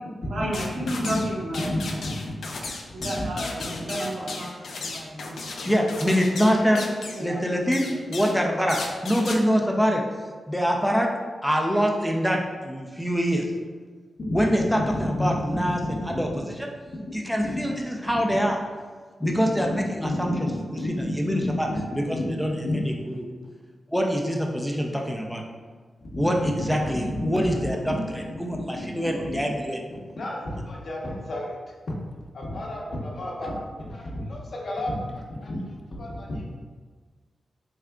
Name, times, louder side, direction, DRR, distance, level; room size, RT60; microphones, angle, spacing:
voice 1, 0.2-2.0 2.9-5.6 6.4-6.9 7.1-7.6 7.8-7.9, right 1 dB, 85° right, -5 dB, 0.9 m, -33 dB
sound 1, 0.5-1.3 1.5-7.3 7.7-8.4 8.7-9.4, left 3 dB, 75° left, 0.4 m, -35 dB
voice 2, 5.5-6.9 7.2-10.0 10.5-11.1 11.4-13.5 14.3-15.8 16.0-16.7 17.1-18.6 19.2-21.7 22.0-23.2 23.9-25.4 26.2-29.8, equal, ahead, 1 dB, 0.4 m, -25 dB
voice 3, 15.1-15.6 15.9-16.0 19.2-19.3 20.1-20.6 21.0-21.5 22.1-22.2 22.6-22.8 26.1-28.0 28.5-28.9 29.3-29.4 30.2-30.4 30.7-31.6 32.3-33.6 33.9-35.6 36.0-36.5, left 1 dB, 60° left, -3 dB, 0.8 m, -31 dB
3.6 x 3.3 x 2.3 m, 1.5 s
cardioid pair, 85°, 0 cm